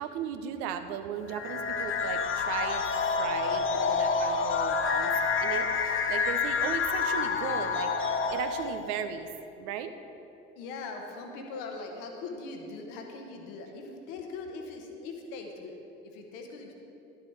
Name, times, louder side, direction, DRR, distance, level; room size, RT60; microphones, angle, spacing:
voice 1, 0.0-5.1 5.4-9.3 9.6-9.9, right 8 dB, 65° right, 9 dB, 0.7 m, -36 dB
sound 1, 1.3-8.9, left 5 dB, 35° left, 0.8 m, -28 dB
voice 2, 10.6-15.8 16.1-16.7, left 3 dB, 65° left, 3 dB, 1.3 m, -41 dB
11.5 x 6.9 x 4.6 m, 2.8 s
figure-of-eight pair, 55°, 34 cm